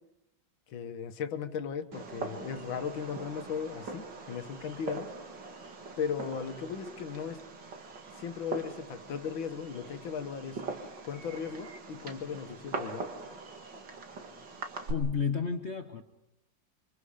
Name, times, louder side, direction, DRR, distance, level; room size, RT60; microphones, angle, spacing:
voice 1, 0.7-5.1 6.0-7.4 8.2-10.7 11.0-13.4, left 7 dB, 85° left, 9 dB, 2.0 m, -37 dB
Fireworks, 1.9-14.9, right 4 dB, 65° right, 2.6 m, -42 dB
voice 2, 14.9-16.0, left 6 dB, 45° left, 7 dB, 1.0 m, -31 dB
27.0 x 26.0 x 5.1 m, 0.89 s
omnidirectional pair, 2.1 m